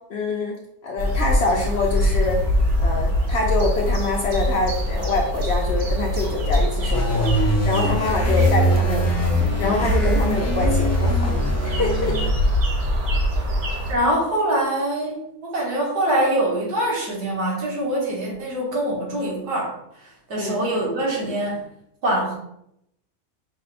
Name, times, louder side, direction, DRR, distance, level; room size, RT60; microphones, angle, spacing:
voice 1, 0.1-0.6 0.8-2.4 2.8-11.3 11.6-12.2 20.4-20.6, left 3 dB, 65° left, 0 dB, 0.6 m, -25 dB
sound 1, 1.0-14.0, equal, 50° right, 0.7 m, -23 dB
sound 2, 6.9-12.3, equal, 25° left, 0.3 m, -23 dB
voice 2, 13.9-19.7 20.3-21.6 22.0-22.3, right 1 dB, 90° right, -3 dB, 1.8 m, -24 dB
4.9 x 2.1 x 4.0 m, 0.78 s
omnidirectional pair, 1.6 m